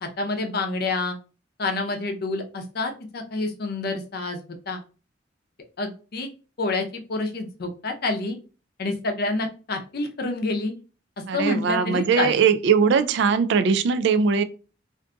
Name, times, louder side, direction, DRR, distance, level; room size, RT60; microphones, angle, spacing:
voice 1, 0.0-1.2 1.6-4.4 4.7-4.8 5.8-6.3 6.6-8.4 8.8-10.7 11.3-12.3, left 2 dB, 55° left, 5 dB, 0.6 m, -28 dB
voice 2, 11.3-14.4, right 6 dB, 65° right, 11 dB, 0.3 m, -20 dB
2.6 x 2.3 x 3.7 m, 0.34 s
head